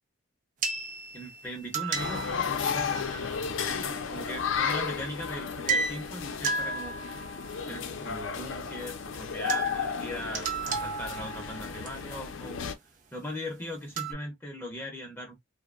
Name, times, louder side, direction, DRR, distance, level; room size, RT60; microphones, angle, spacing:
sound 1, 0.6-2.9 5.7-6.1 6.4-7.5 9.1-9.2 9.5-9.9 10.3-11.9 14.0-14.1, right 4 dB, 40° right, 0.4 m, -33 dB
voice 1, 1.1-7.0 7.7-12.6 13.1-15.4, left 1 dB, 10° left, 0.5 m, -39 dB
sound 2, 1.9-12.8, left 6 dB, 70° left, 0.5 m, -33 dB
2.6 x 2.0 x 2.3 m
head